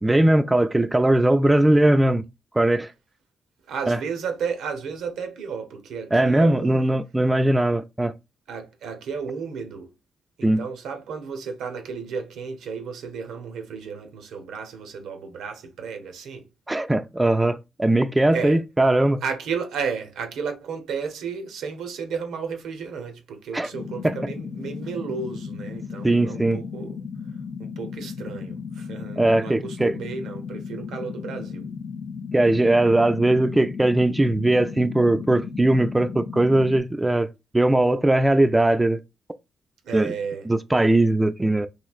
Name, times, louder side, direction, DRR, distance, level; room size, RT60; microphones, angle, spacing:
voice 1, 0.0-2.2 2.5-2.9 3.9-4.0 6.1-8.1 10.4-10.7 16.7-19.2 23.5-23.7 24.0-24.1 26.0-26.6 29.2-29.9 32.3-37.3 37.5-39.0 39.9-40.1 40.5-41.7, right 1 dB, 15° right, 0.3 m, -20 dB
voice 2, 3.7-6.9 8.5-9.9 10.4-16.5 18.3-18.6 19.2-27.0 27.6-31.7 39.8-40.4, right 6 dB, 80° right, 0.7 m, -33 dB
sound 1, 23.7-36.8, left 5 dB, 70° left, 0.5 m, -35 dB
3.1 x 2.8 x 2.3 m
supercardioid pair, 50°, 0 cm